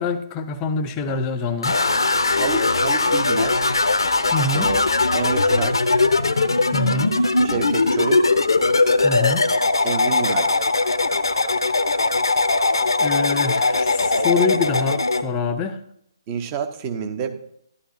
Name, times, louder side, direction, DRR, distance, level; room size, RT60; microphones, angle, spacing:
voice 1, 0.0-1.8 4.3-4.7 6.7-7.2 9.0-9.5 13.0-15.8, left 4 dB, 20° left, 10 dB, 0.7 m, -25 dB
sound 1, 1.6-15.2, left 3 dB, 65° left, 0.8 m, -20 dB
voice 2, 2.3-3.6 4.5-4.8 5.1-5.8 7.2-8.3 9.8-10.6 16.3-17.4, right 7 dB, 25° right, 6 dB, 1.0 m, -28 dB
12.5 x 11.5 x 2.7 m, 0.71 s
figure-of-eight pair, 135°, 3 cm